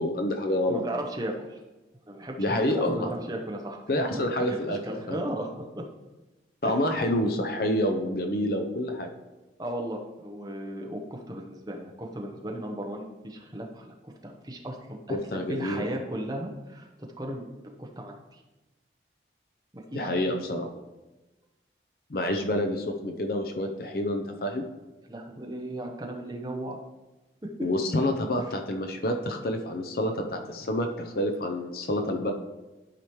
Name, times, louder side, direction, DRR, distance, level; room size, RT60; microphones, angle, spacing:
voice 1, 0.0-0.8 2.4-3.1 3.9-4.8 5.1-5.2 6.6-9.1 15.1-15.9 19.9-20.7 22.1-24.7 27.6-32.3, left 1 dB, 55° left, 4 dB, 0.6 m, -28 dB
voice 2, 0.7-1.6 2.0-3.8 4.1-5.8 6.6-6.7 9.6-16.9 17.2-18.4 19.7-20.4 25.1-26.8 27.4-27.7, right 1 dB, 20° right, 1 dB, 0.8 m, -36 dB
12.0 x 5.0 x 3.1 m, 1.1 s
head